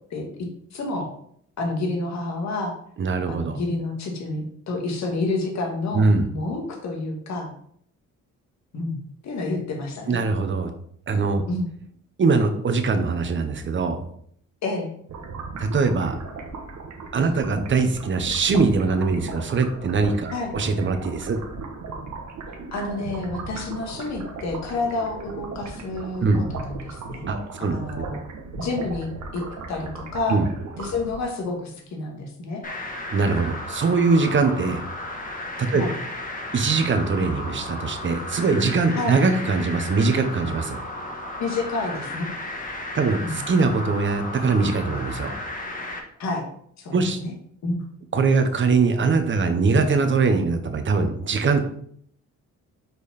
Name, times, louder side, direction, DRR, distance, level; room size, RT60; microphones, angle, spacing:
voice 1, 0.1-1.1 1.6-2.7 3.3-7.5 8.7-10.2 11.5-11.7 14.6-14.9 20.3-20.5 22.5-27.3 27.7-28.2 28.6-29.4 29.7-30.4 30.8-32.6 35.7-35.9 38.9-39.2 41.4-42.3 43.2-43.4 46.2-46.4 46.8-47.3 47.6-47.8, left 2 dB, 65° left, 2 dB, 1.8 m, -29 dB
voice 2, 3.0-3.6 5.9-6.3 10.1-10.7 11.1-11.4 12.2-14.0 15.6-16.2 17.1-21.4 26.2-26.4 27.3-27.4 27.6-28.1 30.3-30.5 33.1-34.8 35.6-35.8 36.5-40.8 42.9-45.3 46.9-47.2 48.1-51.6, right 4 dB, 40° right, 7 dB, 1.1 m, -22 dB
sound 1, 15.1-31.5, right 3 dB, 65° right, 1.2 m, -37 dB
sound 2, 32.6-46.0, left 1 dB, 25° left, 1.5 m, -34 dB
5.3 x 4.6 x 4.3 m, 0.64 s
cardioid pair, 90°, 30 cm